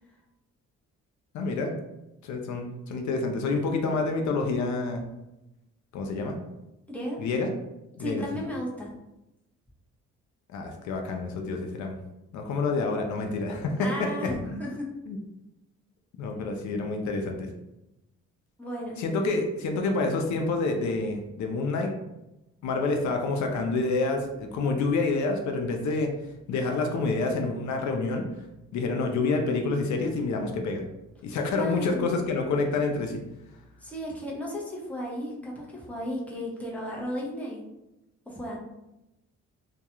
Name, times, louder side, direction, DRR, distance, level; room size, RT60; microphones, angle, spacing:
voice 1, 1.3-1.7 2.2-5.0 5.9-6.4 7.2-7.5 8.0-8.4 10.5-12.0 12.3-14.1 14.5-14.6 15.1-15.2 16.2-17.5 19.0-21.9 22.6-26.1 26.5-28.2 28.7-30.8 31.2-33.2, left 3 dB, 70° left, 3 dB, 0.5 m, -28 dB
voice 2, 6.9-7.2 8.0-8.9 13.8-14.9 18.6-19.0 31.5-32.1 33.8-37.6 38.3-38.6, equal, 5° left, -3 dB, 0.7 m, -34 dB
2.3 x 2.2 x 2.9 m, 0.93 s
cardioid pair, 90°, 30 cm